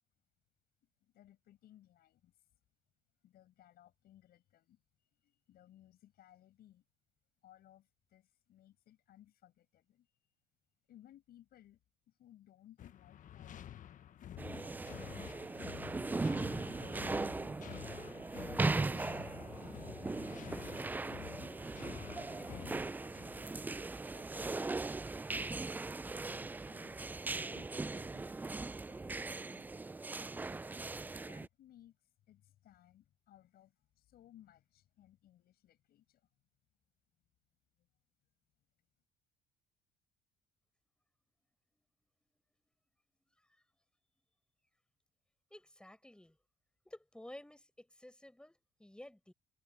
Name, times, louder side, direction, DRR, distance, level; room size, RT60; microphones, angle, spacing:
voice 1, 0.8-2.4 3.2-4.8 5.1-6.8 7.4-10.1 10.9-14.0 14.6-16.2 18.4-20.7 22.2-24.9 26.2-27.1 27.5-28.6 30.8-32.0 32.3-36.3 37.8-37.9, left 12 dB, 65° left, 6.7 m, -62 dB
sound 1, 12.8-23.5, left 11 dB, 50° left, 1.1 m, -50 dB
sound 2, 14.4-31.5, right 3 dB, 10° right, 0.3 m, -39 dB
voice 2, 45.5-46.4 46.8-49.3, left 1 dB, 5° left, 4.9 m, -53 dB
cardioid pair, 110°, 17 cm